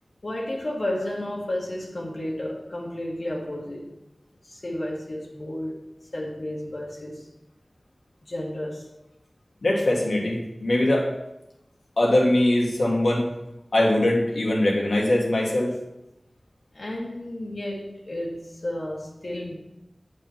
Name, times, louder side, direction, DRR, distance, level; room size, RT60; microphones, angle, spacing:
voice 1, 0.2-3.9 4.4-5.8 6.1-7.3 8.2-8.9 16.7-19.5, left 1 dB, 70° left, 1.5 m, -32 dB
voice 2, 9.6-11.1 12.0-13.3 13.7-15.7, left 1 dB, 85° left, 1.8 m, -21 dB
8.4 x 5.0 x 5.7 m
wide cardioid pair, 60°, 0 cm